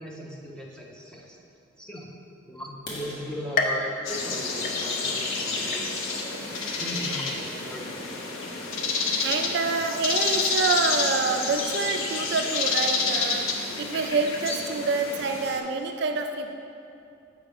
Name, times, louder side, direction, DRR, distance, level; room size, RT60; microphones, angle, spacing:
voice 1, 0.0-1.4 1.8-2.1 2.5-5.9 6.8-8.1, equal, 5° left, -3 dB, 0.6 m, -38 dB
sound 1, 2.7-6.5 7.0-7.2 7.7-7.8 8.2-8.4 8.7-8.8 9.2-9.3 9.6-10.1, left 1 dB, 65° left, 1.1 m, -45 dB
sound 2, 3.6-5.3 5.7-6.3 6.8-6.9 7.9-8.0, left 3 dB, 40° left, 0.4 m, -31 dB
sound 3, 4.0-15.6, left 4 dB, 90° left, 0.6 m, -29 dB
voice 2, 9.2-16.5, right 4 dB, 55° right, 5 dB, 0.3 m, -27 dB
7.0 x 4.8 x 3.5 m, 2.6 s
head